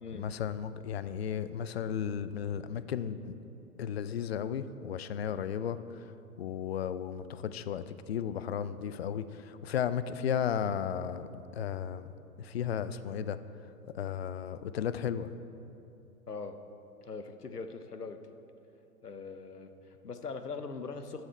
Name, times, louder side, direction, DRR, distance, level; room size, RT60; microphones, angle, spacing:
voice 1, 0.1-3.4 3.8-5.8 6.4-12.1 12.4-13.4 13.9-15.3, left 8 dB, 45° left, 14 dB, 0.4 m, -34 dB
voice 2, 16.3-16.6 17.0-18.2 19.0-21.2, left 4 dB, 90° left, 8 dB, 0.8 m, -41 dB
12.0 x 7.6 x 4.3 m, 2.8 s
figure-of-eight pair, 115°, 45 cm